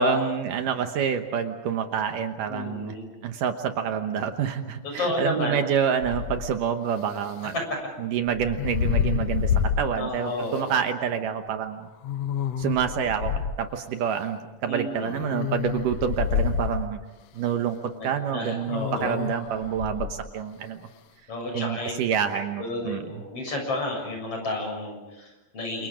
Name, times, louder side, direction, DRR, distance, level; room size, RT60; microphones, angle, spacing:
voice 1, 0.0-2.9 3.2-7.5 8.0-11.9 12.6-13.3 13.6-17.0 17.3-20.8 21.5-23.0, right 8 dB, 70° right, 7 dB, 2.6 m, -27 dB
voice 2, 2.5-3.1 4.8-5.6 7.5-7.6 10.0-10.7 14.7-15.1 17.9-19.2 21.3-21.9 22.6-25.9, left 2 dB, 40° left, 1 dB, 8.0 m, -31 dB
sound 1, 6.0-6.5 8.3-9.9 10.6-10.7 12.0-13.6 15.0-16.9 18.7-20.2, left 8 dB, 75° left, 1.5 m, -28 dB
29.0 x 28.0 x 5.1 m, 1.1 s
omnidirectional pair, 4.1 m